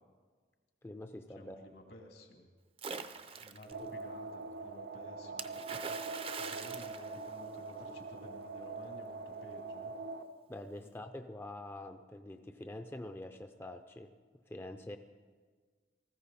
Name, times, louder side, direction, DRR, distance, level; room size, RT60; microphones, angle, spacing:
voice 1, 0.8-1.6 3.8-3.9 10.5-15.0, left 1 dB, 15° left, 7 dB, 0.5 m, -46 dB
voice 2, 1.3-2.5 3.0-9.9 10.8-10.9, left 1 dB, 80° left, 2 dB, 2.4 m, -54 dB
Splash splatter, 2.8-3.7 5.4-7.8, right 5 dB, 35° right, 0.6 m, -43 dB
sound 1, 3.7-10.2, right 3 dB, 75° right, 0.8 m, -43 dB
19.0 x 14.5 x 4.2 m, 1.5 s
head